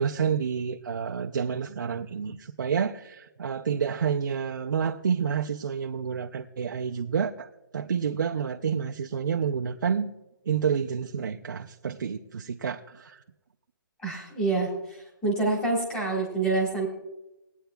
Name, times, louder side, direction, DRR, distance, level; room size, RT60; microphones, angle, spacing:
voice 1, 0.0-10.1 10.5-13.2, right 7 dB, 60° right, 2 dB, 0.5 m, -29 dB
voice 2, 14.0-16.9, right 3 dB, 5° left, -2 dB, 1.5 m, -27 dB
20.5 x 9.1 x 2.3 m, 0.96 s
hypercardioid pair, 175°, 12 cm